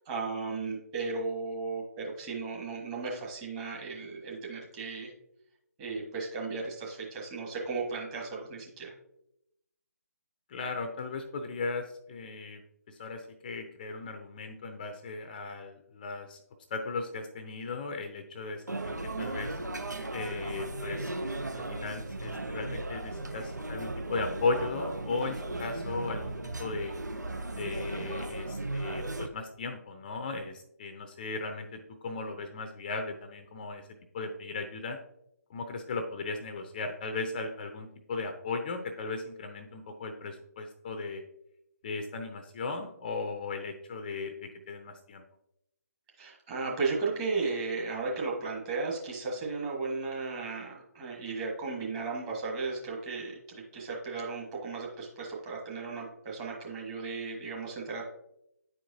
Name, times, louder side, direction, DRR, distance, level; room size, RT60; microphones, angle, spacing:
voice 1, 0.0-5.1 5.8-8.9 46.2-58.0, right 4 dB, 20° right, -3 dB, 1.5 m, -35 dB
voice 2, 10.5-12.6 12.9-16.4 16.7-19.6 20.1-21.1 21.5-26.9 27.5-33.9 34.1-35.0 35.5-41.2 41.8-45.2, left 3 dB, 30° left, 6 dB, 0.6 m, -36 dB
sound 1, 18.7-29.3, right 2 dB, 90° right, 0.7 m, -36 dB
9.7 x 4.6 x 2.7 m, 0.82 s
figure-of-eight pair, 150°, 9 cm